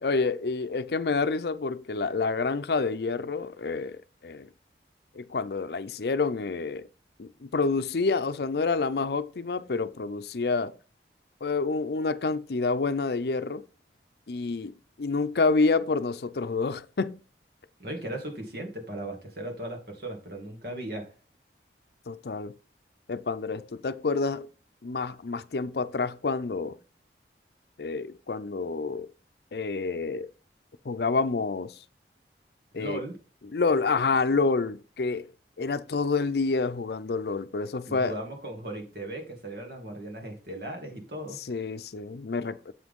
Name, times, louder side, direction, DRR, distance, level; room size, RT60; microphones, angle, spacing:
voice 1, 0.0-4.5 5.1-6.9 7.2-10.8 11.4-13.6 14.3-17.2 22.1-22.5 23.1-24.5 24.8-26.8 27.8-29.1 29.5-30.3 30.8-31.7 32.7-33.0 33.5-35.3 35.6-38.2 41.5-42.7, left 4 dB, 65° left, 0.5 m, -28 dB
voice 2, 17.8-21.1 32.7-33.2 37.9-41.4, right 1 dB, 60° right, 2.3 m, -37 dB
7.6 x 6.1 x 3.6 m
head